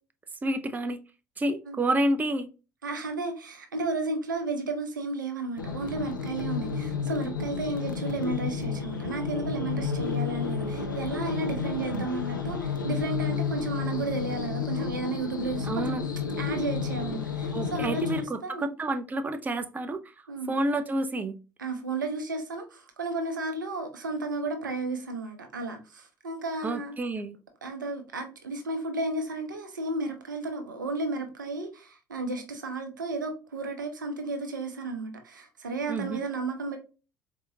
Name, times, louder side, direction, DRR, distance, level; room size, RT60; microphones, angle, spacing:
voice 1, 0.4-1.0 1.4-2.5 15.6-16.1 17.5-21.4 26.6-27.4 35.9-36.2, right 1 dB, 15° right, 0.4 m, -29 dB
voice 2, 2.8-15.9 16.4-18.7 20.3-20.5 21.6-27.0 27.6-36.8, right 2 dB, 85° right, 0.6 m, -33 dB
sound 1, 5.6-18.2, left 5 dB, 85° left, 0.5 m, -31 dB
4.1 x 2.6 x 2.6 m
figure-of-eight pair, 60°, 10 cm